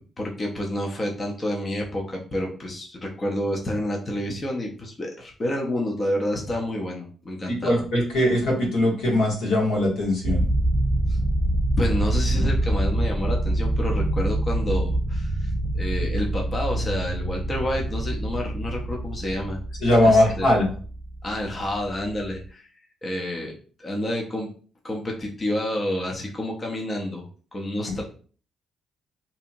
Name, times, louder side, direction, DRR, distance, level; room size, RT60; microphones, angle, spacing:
voice 1, 0.2-7.8 11.1-11.2 11.8-19.6 20.0-20.6 21.2-22.7 23.0-24.5 24.8-27.2 27.5-28.0, left 1 dB, 30° left, 0 dB, 0.6 m, -29 dB
voice 2, 7.6-10.4 19.8-20.7 27.9-28.0, left 1 dB, 85° left, -2 dB, 1.1 m, -20 dB
sound 1, 10.2-22.4, right 1 dB, 60° right, 0.4 m, -25 dB
2.7 x 2.7 x 2.5 m, 0.42 s
cardioid pair, 90°, 0 cm